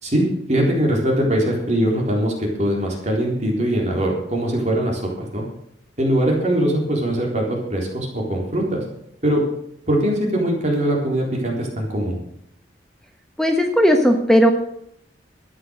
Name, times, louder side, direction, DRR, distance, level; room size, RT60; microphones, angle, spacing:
voice 1, 0.0-5.4 6.0-8.8 9.2-9.4 9.9-12.2, right 1 dB, 40° right, -1 dB, 3.9 m, -21 dB
voice 2, 13.4-14.5, equal, 5° left, 3 dB, 1.2 m, -16 dB
13.0 x 9.5 x 6.4 m, 0.75 s
head